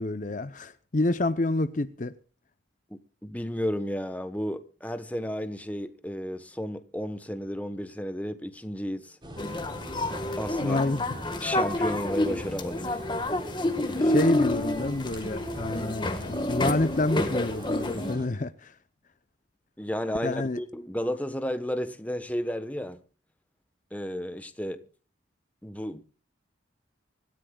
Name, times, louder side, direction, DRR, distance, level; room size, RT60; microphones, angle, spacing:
voice 1, 0.0-2.1 10.6-11.1 14.0-18.7 20.2-20.6, left 2 dB, 40° left, 0.7 m, -28 dB
voice 2, 2.9-9.2 10.4-10.8 11.4-13.0 13.6-13.7 19.8-23.0 23.9-24.9 25.6-26.0, equal, 10° left, 1.1 m, -33 dB
sound 1, 9.2-18.3, equal, 25° right, 4.0 m, -42 dB
sound 2, 9.4-18.2, left 1 dB, 25° left, 1.6 m, -29 dB
25.0 x 14.0 x 2.4 m
head